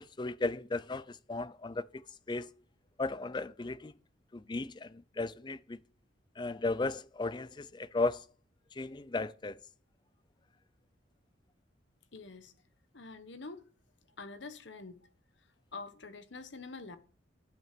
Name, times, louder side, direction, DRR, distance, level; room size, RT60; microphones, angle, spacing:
voice 1, 0.0-2.0 2.3-2.5 3.0-3.9 4.3-5.8 6.4-8.3 8.7-9.6, left 3 dB, 25° left, 0.4 m, -35 dB
voice 2, 12.1-12.5 12.9-13.7 14.2-15.0 15.7-17.0, left 3 dB, 65° left, 1.2 m, -46 dB
11.0 x 6.2 x 6.7 m
head